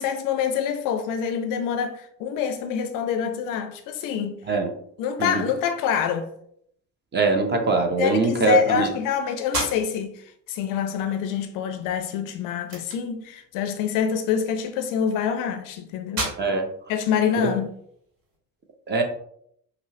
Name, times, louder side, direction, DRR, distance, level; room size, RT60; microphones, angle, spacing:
voice 1, 0.0-4.4 5.0-6.3 8.0-16.3 16.9-17.7, left 7 dB, 45° left, 0.5 m, -26 dB
voice 2, 5.2-5.5 7.1-8.9 16.4-16.7 17.4-17.5 18.9-19.0, right 3 dB, 25° right, 0.7 m, -22 dB
sound 1, 9.5-18.4, right 1 dB, 50° right, 1.4 m, -37 dB
5.4 x 2.0 x 2.7 m
figure-of-eight pair, 55°, 46 cm